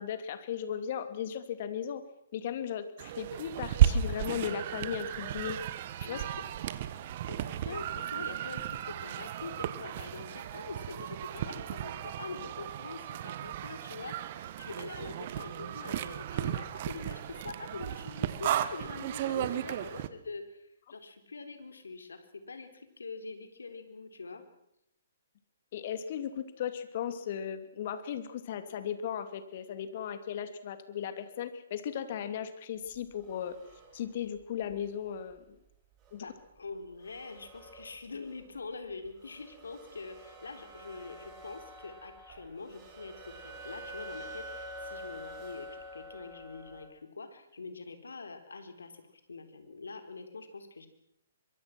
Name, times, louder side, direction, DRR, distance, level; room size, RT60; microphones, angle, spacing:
voice 1, 0.0-2.0 2.3-5.6 6.0-6.2 25.7-33.6 33.9-35.6 36.1-36.3, left 9 dB, 50° left, 10 dB, 2.8 m, -36 dB
sound 1, 3.0-20.1, right 11 dB, 45° right, 1.6 m, -34 dB
voice 2, 6.0-6.5 7.3-24.4 36.1-49.0 49.3-50.9, left 4 dB, 80° left, 8 dB, 4.1 m, -44 dB
sound 2, 32.9-34.7 35.2-35.3 36.0-36.2 36.6-36.7 36.9-38.6 39.0-46.9, equal, 25° right, 6.2 m, -47 dB
24.0 x 23.5 x 6.2 m, 0.81 s
hypercardioid pair, 130°, 0 cm